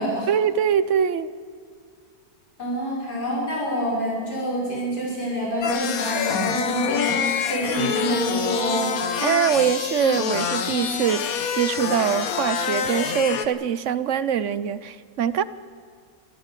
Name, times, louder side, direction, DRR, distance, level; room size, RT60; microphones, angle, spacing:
voice 1, 0.3-1.3 9.2-15.4, right 8 dB, 60° right, 16 dB, 0.9 m, -23 dB
voice 2, 2.6-9.0, equal, 85° left, -4 dB, 6.4 m, -27 dB
sound 1, 5.6-13.5, left 7 dB, 65° left, 1.5 m, -26 dB
24.5 x 15.0 x 8.3 m, 2.2 s
omnidirectional pair, 1.7 m